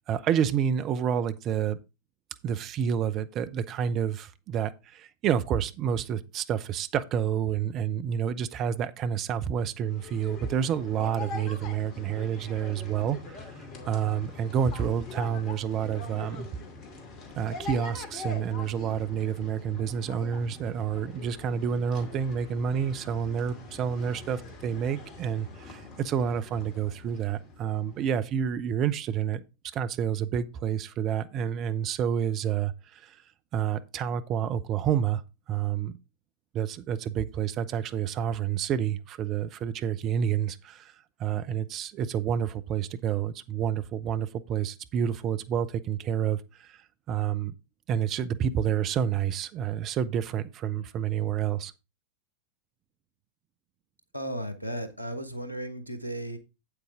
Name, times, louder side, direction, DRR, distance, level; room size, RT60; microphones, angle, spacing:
voice 1, 0.1-1.8 2.4-13.5 13.9-16.5 17.4-29.4 29.7-33.2 33.5-35.2 35.5-35.9 36.5-40.9 41.2-46.8 47.1-47.5 47.9-51.7, right 8 dB, 35° right, 0.8 m, -29 dB
sound 1, 9.8-28.3, left 4 dB, 35° left, 2.4 m, -43 dB
voice 2, 54.1-56.4, right 1 dB, 90° left, 1.3 m, -35 dB
8.4 x 8.2 x 3.6 m
figure-of-eight pair, 90°, 0 cm